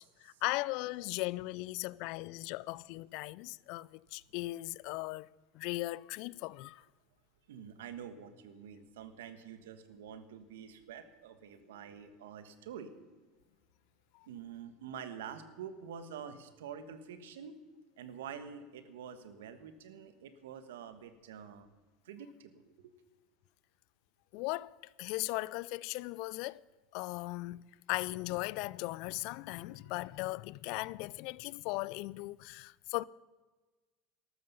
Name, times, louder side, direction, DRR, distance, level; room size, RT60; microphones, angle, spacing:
voice 1, 0.0-5.3 5.5-6.8 24.3-26.6 26.9-33.0, left 21 dB, 65° left, 0.3 m, -38 dB
voice 2, 7.5-12.9 14.3-17.6 18.0-21.7 22.0-22.9 29.7-29.8, right 7 dB, 85° right, 1.3 m, -47 dB
13.0 x 13.0 x 5.5 m
supercardioid pair, 105°, 0 cm